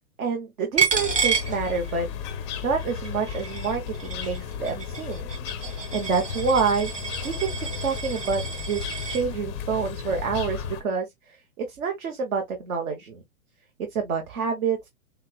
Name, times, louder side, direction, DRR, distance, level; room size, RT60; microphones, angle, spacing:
voice 1, 0.2-2.1 2.6-5.2 5.9-6.9 7.2-8.4 8.7-13.2 13.9-14.9, right 5 dB, 65° right, 1.2 m, -27 dB
Coin (dropping), 0.8-2.3 2.6-9.2, right 5 dB, 15° right, 1.2 m, -30 dB
sound 1, 0.9-10.8, left 7 dB, 20° left, 0.4 m, -34 dB
5.7 x 2.4 x 2.3 m
hypercardioid pair, 120°, 45 cm